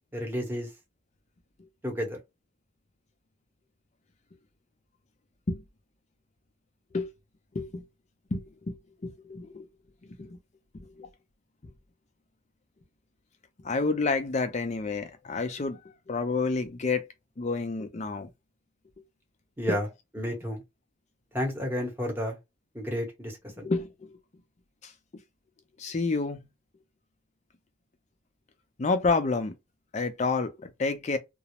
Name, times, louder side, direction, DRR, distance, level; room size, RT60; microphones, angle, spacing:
voice 1, 0.1-0.7 1.8-2.2 19.6-19.9 20.1-20.6 21.3-22.4 22.7-23.7, equal, 10° right, 0.8 m, -31 dB
voice 2, 8.3-9.7 10.2-10.4 10.7-11.1 13.6-15.8 16.1-17.1 17.4-18.3 19.7-19.8 23.6-24.1 24.8-24.9 25.8-26.5 28.8-29.5 29.9-31.2, left 3 dB, 35° left, 0.4 m, -29 dB
2.3 x 2.0 x 2.9 m
head